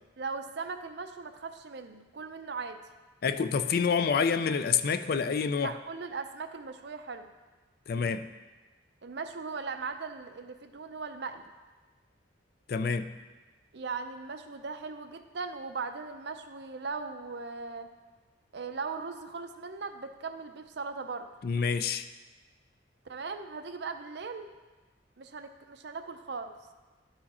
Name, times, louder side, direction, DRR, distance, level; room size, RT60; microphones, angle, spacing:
voice 1, 0.2-2.8 5.6-7.3 9.0-11.4 13.7-17.9 18.5-21.3 23.0-24.5 25.2-26.5, right 4 dB, 60° right, 7 dB, 0.6 m, -38 dB
voice 2, 3.2-5.7 7.9-8.3 12.7-13.1 21.4-22.1, left 6 dB, 50° left, 11 dB, 0.4 m, -27 dB
12.0 x 4.8 x 4.2 m, 1.3 s
head